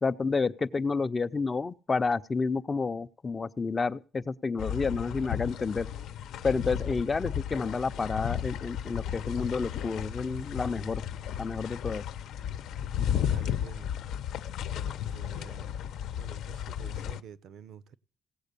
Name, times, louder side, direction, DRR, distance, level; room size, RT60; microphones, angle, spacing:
voice 1, 0.0-5.9 6.4-11.0 11.4-12.0, left 4 dB, 25° left, 0.6 m, -30 dB
sound 1, 4.6-17.2, left 9 dB, 70° left, 0.8 m, -34 dB
voice 2, 13.3-13.9 14.9-15.8 16.1-18.0, right 8 dB, 65° right, 0.7 m, -49 dB
17.0 x 8.0 x 6.8 m
cardioid pair, 140°, 0 cm